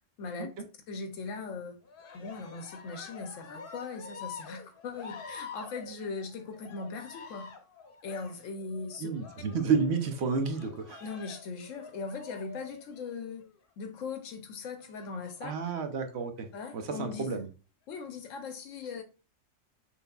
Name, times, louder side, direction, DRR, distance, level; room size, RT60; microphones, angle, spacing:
voice 1, 0.9-1.8 2.1-7.5 8.0-9.1 11.0-13.5 13.8-15.5 16.5-17.4 17.9-19.0, left 4 dB, 85° left, 1.0 m, -39 dB
Cheering, 1.8-13.5 14.8-15.7 16.4-17.0, left 5 dB, 50° left, 0.9 m, -47 dB
voice 2, 9.0-11.0 15.4-16.5 16.7-17.5, right 5 dB, 65° right, 0.9 m, -30 dB
5.9 x 3.5 x 2.3 m
omnidirectional pair, 1.3 m